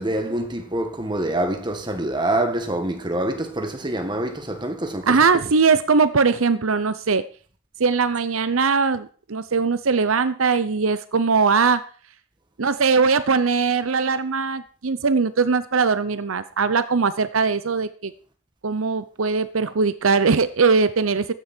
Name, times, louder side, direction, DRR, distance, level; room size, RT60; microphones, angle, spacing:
voice 1, 0.0-5.4, right 1 dB, 20° right, 1.9 m, -26 dB
voice 2, 5.1-7.2 7.8-11.8 12.6-18.1 18.6-21.3, right 5 dB, 80° right, 0.7 m, -20 dB
14.5 x 10.0 x 4.5 m
head